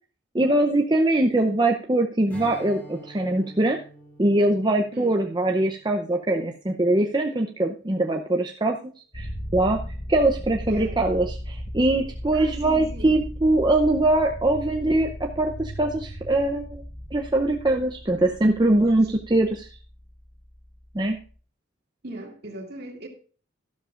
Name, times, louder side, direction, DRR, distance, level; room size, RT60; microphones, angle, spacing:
voice 1, 0.3-3.8 4.2-8.8 9.1-9.8 10.1-16.8 17.1-19.7 20.9-21.2, right 2 dB, 20° right, 0.6 m, -22 dB
Strum, 2.3-7.7, right 1 dB, 10° left, 4.2 m, -48 dB
sound 1, 9.1-21.3, equal, 40° left, 2.0 m, -37 dB
voice 2, 10.7-11.0 12.3-13.2 18.8-19.1 22.0-23.1, right 1 dB, 55° right, 2.4 m, -38 dB
12.5 x 12.0 x 2.5 m
head